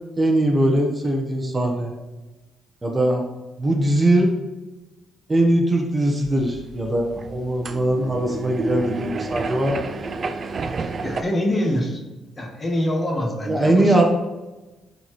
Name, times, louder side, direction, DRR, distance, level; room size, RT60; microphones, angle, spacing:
voice 1, 0.2-1.9 2.8-3.2 3.6-4.3 5.3-9.9 13.5-14.0, right 1 dB, 20° right, 1 dB, 1.2 m, -20 dB
sound 1, 6.2-11.2, right 3 dB, 40° right, 0.5 m, -30 dB
voice 2, 11.0-12.0 12.4-14.0, left 1 dB, 25° left, 1 dB, 1.4 m, -24 dB
12.0 x 4.2 x 3.2 m, 1.1 s
cardioid pair, 90°, 0 cm